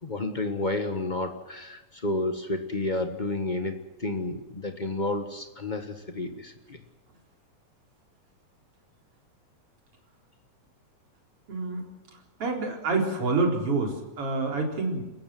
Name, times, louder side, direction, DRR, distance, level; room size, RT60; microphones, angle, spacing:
voice 1, 0.0-6.8, left 2 dB, 85° left, 7 dB, 0.4 m, -31 dB
voice 2, 11.5-11.9 12.4-15.0, right 3 dB, 45° right, 2 dB, 4.8 m, -27 dB
28.5 x 15.5 x 7.7 m, 1.1 s
omnidirectional pair, 3.5 m